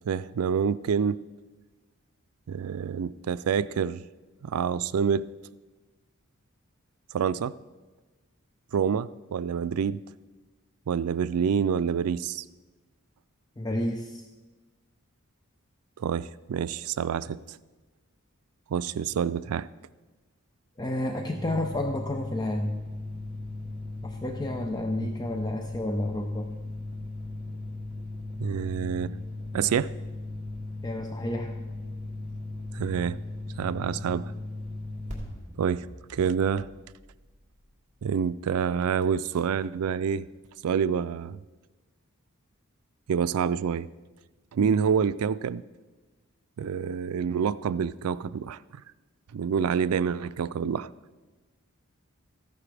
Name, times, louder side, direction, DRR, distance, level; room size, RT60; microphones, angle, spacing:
voice 1, 0.1-1.2 2.5-4.0 4.4-5.3 7.1-7.5 8.7-10.0 10.9-12.4 16.0-17.6 18.7-19.7 25.0-25.1 28.4-29.1 29.5-29.9 32.7-33.2 33.6-34.3 35.6-36.7 38.0-40.3 40.6-41.4 43.1-43.9 44.5-45.6 46.6-48.8 49.3-50.9, right 7 dB, 90° right, 16 dB, 0.4 m, -27 dB
voice 2, 13.6-14.2 20.8-22.8 24.0-26.5 30.8-31.6 44.6-44.7, left 1 dB, 20° left, 3 dB, 0.6 m, -31 dB
sound 1, 21.3-37.7, left 2 dB, 35° right, 2.9 m, -38 dB
14.5 x 11.0 x 3.4 m, 1.2 s
head